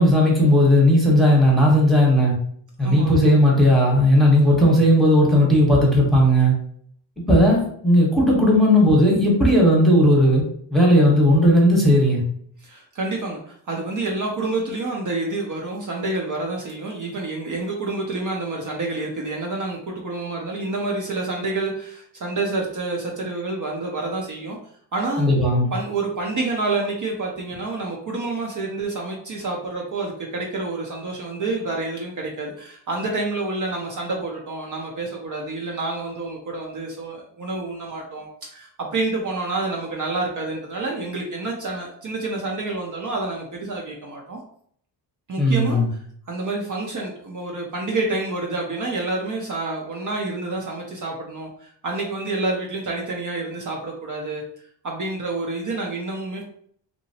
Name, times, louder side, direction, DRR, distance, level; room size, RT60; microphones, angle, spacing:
voice 1, 0.0-2.3 2.8-6.5 7.2-10.4 10.7-12.2 25.2-25.7 45.4-45.9, equal, ahead, -3 dB, 1.0 m, -16 dB
voice 2, 2.8-3.3 12.6-24.6 24.9-25.3 25.7-44.4 45.3-45.8 46.3-54.4 54.8-56.4, right 2 dB, 45° right, -1 dB, 0.6 m, -28 dB
2.9 x 2.6 x 2.8 m, 0.62 s
cardioid pair, 115°, 44 cm